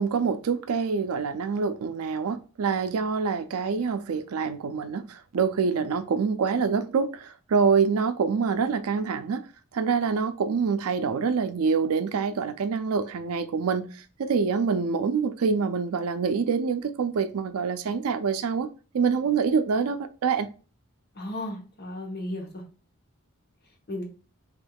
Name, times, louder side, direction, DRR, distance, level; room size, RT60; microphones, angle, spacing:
voice 1, 0.0-9.4 9.7-18.7 18.9-20.5, right 5 dB, 80° right, 0.4 m, -26 dB
voice 2, 21.2-22.6 23.9-24.0, left 1 dB, 45° left, 0.9 m, -34 dB
3.4 x 3.4 x 2.2 m
head